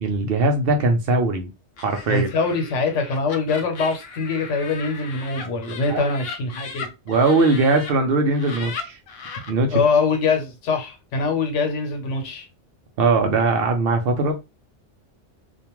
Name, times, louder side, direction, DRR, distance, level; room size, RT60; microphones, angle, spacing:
voice 1, 0.0-1.5 1.8-2.3 5.9-6.1 7.1-9.0 9.5-9.8 13.0-14.3, right 3 dB, 65° right, 0.7 m, -20 dB
Laughter, 1.8-7.9 8.3-9.5, left 5 dB, 65° left, 0.8 m, -37 dB
voice 2, 2.1-6.9 9.7-12.5, left 4 dB, 85° left, 1.1 m, -23 dB
2.4 x 2.2 x 2.9 m
omnidirectional pair, 1.2 m